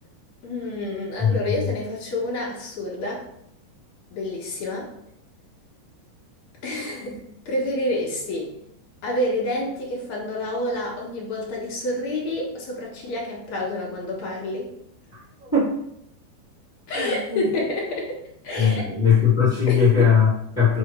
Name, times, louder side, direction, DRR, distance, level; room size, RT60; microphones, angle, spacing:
voice 1, 0.4-3.2 4.1-4.9 6.6-8.5 9.0-14.7 16.9-18.2 18.4-18.8 19.7-20.1, left 1 dB, 55° left, -3 dB, 2.4 m, -28 dB
voice 2, 15.4-15.7 16.9-17.5 18.6-20.8, left 6 dB, 35° left, -8 dB, 0.6 m, -19 dB
5.6 x 5.5 x 4.7 m, 0.74 s
omnidirectional pair, 5.1 m